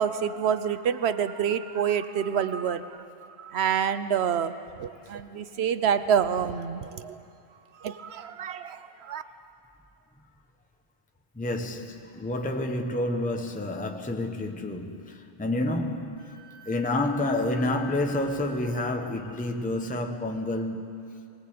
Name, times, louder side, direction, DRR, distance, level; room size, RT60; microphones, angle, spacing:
voice 1, 0.0-2.9 3.4-7.2 7.8-9.2, right 8 dB, 60° right, 1.0 m, -27 dB
voice 2, 11.4-16.4 16.6-21.0, left 1 dB, 5° left, 1.0 m, -29 dB
Wind instrument woodwind instrument, 16.2-19.0, left 4 dB, 45° left, 3.2 m, -47 dB
23.0 x 18.5 x 8.6 m
omnidirectional pair, 1.3 m